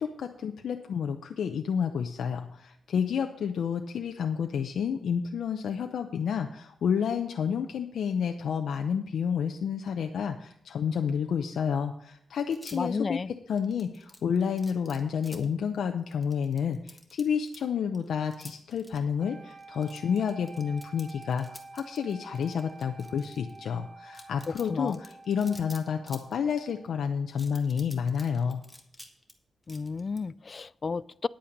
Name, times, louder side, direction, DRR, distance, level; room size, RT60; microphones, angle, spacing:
voice 1, 0.0-28.6, left 7 dB, 85° left, 5 dB, 0.6 m, -30 dB
sound 1, 12.4-13.0 13.6-15.5 16.1-17.6 17.9-19.0 19.5-23.6 24.1-26.7 27.3-29.3 29.6-30.2, left 1 dB, 5° left, 1.5 m, -49 dB
voice 2, 12.7-13.3 24.7-25.0 29.7-31.3, left 4 dB, 40° left, 20 dB, 0.3 m, -32 dB
sound 2, 19.2-27.3, right 3 dB, 40° right, 1.2 m, -49 dB
10.0 x 8.6 x 5.3 m, 0.72 s
cardioid pair, 105°, 0 cm